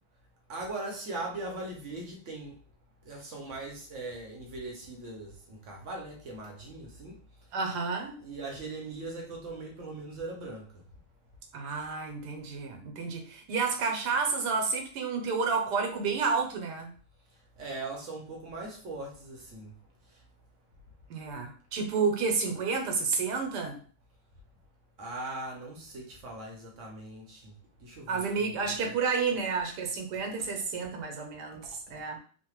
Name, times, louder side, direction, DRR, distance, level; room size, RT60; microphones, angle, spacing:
voice 1, 0.5-2.6 3.0-7.2 8.2-10.8 17.6-19.8 20.1-20.2 25.0-27.5 27.8-28.9, right 2 dB, 60° right, 0.8 m, -40 dB
voice 2, 7.5-8.2 11.5-16.9 21.1-23.8 28.1-32.2, right 5 dB, 85° right, 1.3 m, -30 dB
3.1 x 2.1 x 3.0 m
omnidirectional pair, 1.7 m